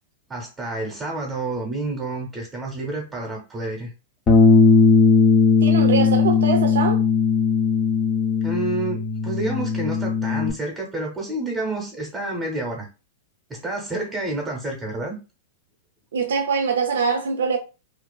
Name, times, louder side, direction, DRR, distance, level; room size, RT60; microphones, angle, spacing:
voice 1, 0.3-3.9 8.4-12.9 13.5-15.2, right 2 dB, 15° right, 0.7 m, -29 dB
Bass guitar, 4.3-10.5, left 5 dB, 25° left, 0.5 m, -18 dB
voice 2, 5.6-7.0 16.1-17.6, right 5 dB, 80° right, 0.4 m, -23 dB
2.4 x 2.3 x 2.2 m
hypercardioid pair, 130°, 0 cm